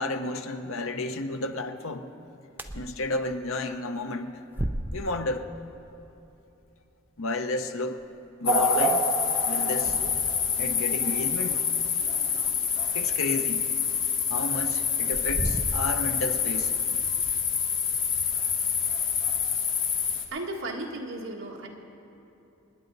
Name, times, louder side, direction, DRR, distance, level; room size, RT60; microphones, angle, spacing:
voice 1, 0.0-2.1 2.7-4.4 4.9-5.5 7.2-8.0 8.4-9.1 9.4-10.0 10.6-11.6 12.9-13.6 14.3-16.7, left 2 dB, 75° left, 7 dB, 0.8 m, -32 dB
sound 1, 2.5-2.9 3.3-3.4 4.5-5.3 8.0-8.1 9.2-9.3 9.6-9.7 10.3-10.4 11.5-12.9 13.9-14.0 14.9-16.1 16.5-16.6 17.1-17.7 18.0-18.4, right 1 dB, 10° right, 0.5 m, -35 dB
sound 2, 8.4-20.2, left 5 dB, 60° left, 1.4 m, -26 dB
voice 2, 20.3-21.7, right 2 dB, 65° right, 0 dB, 1.6 m, -35 dB
27.5 x 9.8 x 4.0 m, 2.9 s
head